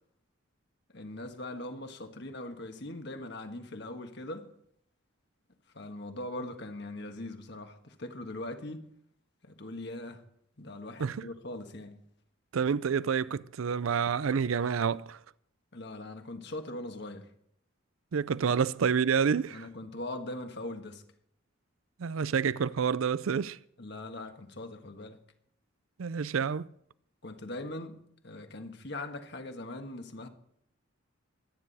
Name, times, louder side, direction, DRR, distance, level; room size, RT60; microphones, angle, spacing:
voice 1, 0.9-4.5 5.7-8.9 9.4-10.2 10.6-12.0 15.7-17.3 18.5-18.6 19.5-21.0 23.8-25.2 27.2-30.3, left 1 dB, 55° left, 1.6 m, -41 dB
voice 2, 12.5-15.2 18.1-19.7 22.0-23.6 26.0-26.7, right 6 dB, 85° right, 0.5 m, -28 dB
24.0 x 9.8 x 4.2 m
head